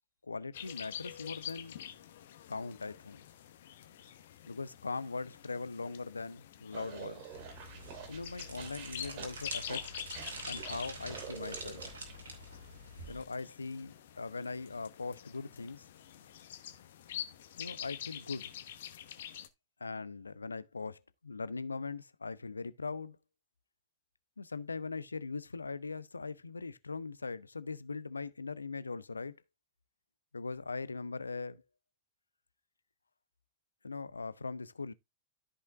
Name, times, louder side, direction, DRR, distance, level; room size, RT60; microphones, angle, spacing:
voice 1, 0.2-1.8 2.5-3.2 4.5-7.3 8.1-9.9 10.4-11.8 13.1-15.8 17.6-18.5 19.8-23.2 24.4-29.4 30.3-31.6 33.8-34.9, left 4 dB, 80° left, 0.5 m, -40 dB
sound 1, 0.5-19.5, left 10 dB, 60° left, 1.0 m, -47 dB
sound 2, 6.7-12.1, right 7 dB, 45° right, 2.2 m, -48 dB
sound 3, 7.3-13.2, right 2 dB, 65° right, 2.6 m, -46 dB
13.5 x 5.6 x 2.5 m
figure-of-eight pair, 90°, 0 cm